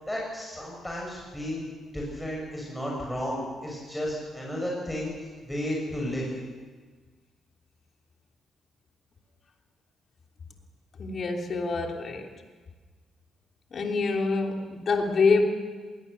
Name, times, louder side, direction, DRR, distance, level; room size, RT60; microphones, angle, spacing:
voice 1, 0.1-5.1 5.5-6.3, equal, 5° left, -3 dB, 6.7 m, -33 dB
voice 2, 11.0-12.3 13.7-15.4, left 4 dB, 50° left, 2 dB, 3.2 m, -25 dB
20.5 x 18.5 x 6.8 m, 1.4 s
supercardioid pair, 65°, 0 cm